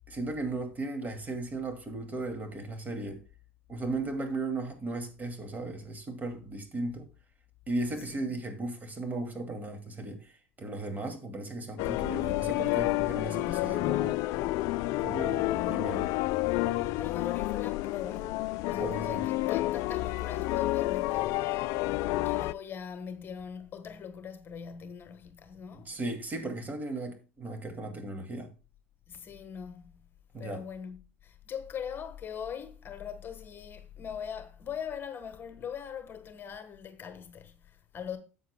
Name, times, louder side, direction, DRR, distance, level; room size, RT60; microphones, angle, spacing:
voice 1, 0.1-3.2 3.7-7.1 7.7-10.3 10.6-14.2 15.0-16.1 18.8-19.2 25.7-28.5 30.3-30.6, right 2 dB, 25° right, 2.4 m, -36 dB
sound 1, 11.8-22.5, left 17 dB, 55° left, 0.4 m, -29 dB
voice 2, 16.9-21.5 22.2-25.9 29.1-30.0 30.4-38.2, left 8 dB, 35° left, 1.3 m, -41 dB
13.0 x 8.2 x 2.2 m
hypercardioid pair, 75°, 7 cm